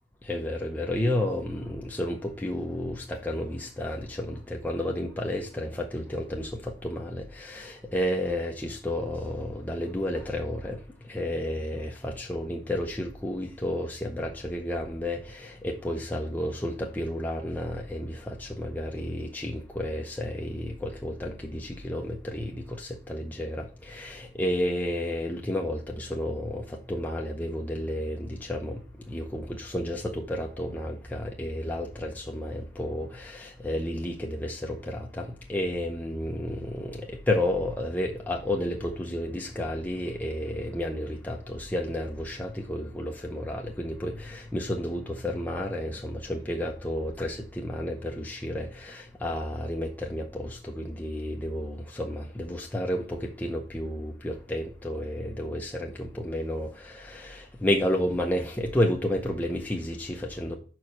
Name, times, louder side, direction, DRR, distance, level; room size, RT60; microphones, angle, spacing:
voice 1, 0.2-60.6, left 1 dB, 10° left, 0.6 m, -31 dB
5.4 x 4.8 x 6.0 m
head